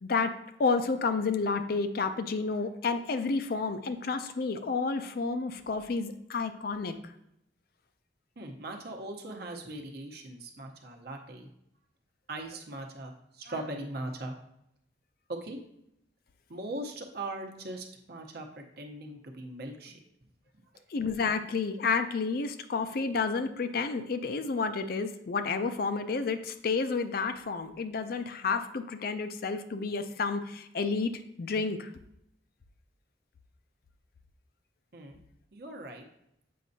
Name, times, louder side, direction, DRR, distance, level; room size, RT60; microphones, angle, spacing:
voice 1, 0.0-0.3 0.6-6.9 20.9-31.1 31.4-31.9, left 4 dB, 55° left, 9 dB, 0.4 m, -30 dB
voice 2, 8.4-11.5 12.3-14.4 15.3-15.6 16.5-20.0 34.9-35.2 35.5-36.0, right 1 dB, 60° right, 3 dB, 0.9 m, -40 dB
7.5 x 5.2 x 2.7 m, 0.78 s
head